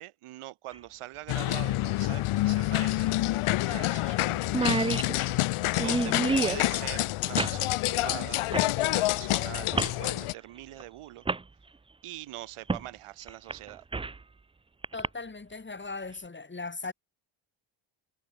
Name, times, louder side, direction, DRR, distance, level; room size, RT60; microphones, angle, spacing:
voice 1, 0.0-3.2 3.7-5.1 5.8-11.3 12.0-13.8, right 15 dB, 90° right, 4.2 m, -43 dB
sound 1, 0.7-0.8 2.6-2.7 3.0-3.1 3.7-3.9 4.2-4.3 4.4-6.6 7.4-7.6 8.5-8.7 9.7-10.0 10.8-10.9 11.2-11.4 12.7-12.9 13.3-14.2 14.8-15.1, right 3 dB, 10° right, 0.5 m, -29 dB
sound 2, 1.3-10.3, left 17 dB, 80° left, 1.2 m, -28 dB
voice 2, 14.9-16.9, left 3 dB, 20° left, 4.2 m, -38 dB
cardioid pair, 95°, 50 cm